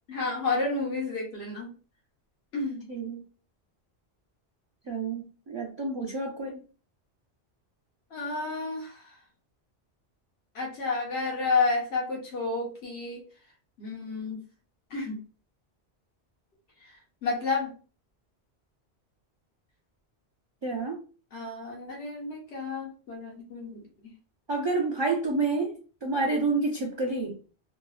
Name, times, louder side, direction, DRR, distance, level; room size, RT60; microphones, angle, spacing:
voice 1, 0.1-1.7 2.5-2.9 8.1-9.1 10.5-13.2 13.8-14.4 14.9-15.2 16.8-16.9 17.2-17.7 21.3-24.1, left 3 dB, 80° left, -2 dB, 1.1 m, -31 dB
voice 2, 2.9-3.2 4.9-6.6 20.6-21.0 24.5-27.4, right 3 dB, 40° right, -1 dB, 0.4 m, -29 dB
3.1 x 2.1 x 2.3 m, 0.36 s
omnidirectional pair, 1.1 m